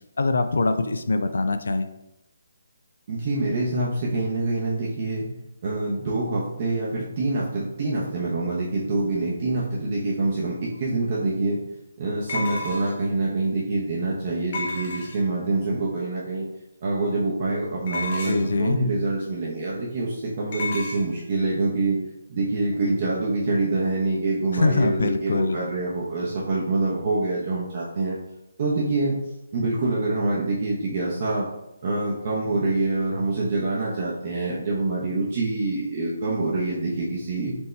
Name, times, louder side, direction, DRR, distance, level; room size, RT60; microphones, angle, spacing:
voice 1, 0.2-1.9 18.2-18.8 24.5-25.6, left 3 dB, 70° left, 9 dB, 0.4 m, -23 dB
voice 2, 3.1-5.3 5.6-11.6 12.0-16.5 16.8-22.0 22.3-28.1 28.6-29.2 29.5-31.5 31.8-37.6, right 2 dB, 35° right, -6 dB, 0.8 m, -25 dB
sound 1, 10.7-10.8 12.3-13.1 14.5-15.4 17.9-18.6 20.5-21.0, left 2 dB, 35° left, 0.8 m, -31 dB
4.4 x 2.8 x 3.2 m, 0.90 s
hypercardioid pair, 170°, 0 cm